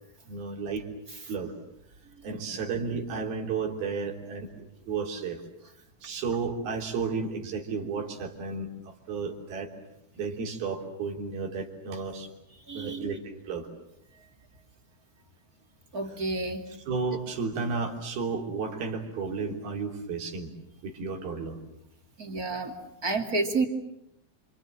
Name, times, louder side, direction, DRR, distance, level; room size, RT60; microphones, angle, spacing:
voice 1, 0.3-0.9 1.3-1.5 2.2-5.4 6.0-9.7 10.1-12.3 12.7-13.7 16.1-16.2 16.7-20.5 20.8-21.6, right 4 dB, 80° right, 2 dB, 5.2 m, -33 dB
voice 2, 12.7-13.2 15.9-16.7 22.2-22.7 23.0-23.7, right 3 dB, 30° right, 4 dB, 2.4 m, -30 dB
28.5 x 27.0 x 7.7 m, 0.83 s
omnidirectional pair, 4.3 m